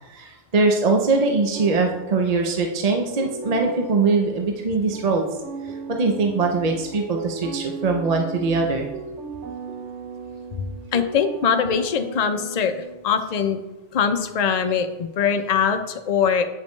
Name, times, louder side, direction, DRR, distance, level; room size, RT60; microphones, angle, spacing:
voice 1, 0.0-5.3 5.7-8.9, right 3 dB, 45° right, 2 dB, 0.6 m, -22 dB
sound 1, 1.5-13.3, right 5 dB, 75° right, 1.0 m, -37 dB
voice 2, 10.9-12.8 13.0-13.6 13.9-16.4, left 7 dB, 50° left, 7 dB, 0.5 m, -22 dB
8.4 x 5.2 x 3.1 m, 1.1 s
omnidirectional pair, 1.2 m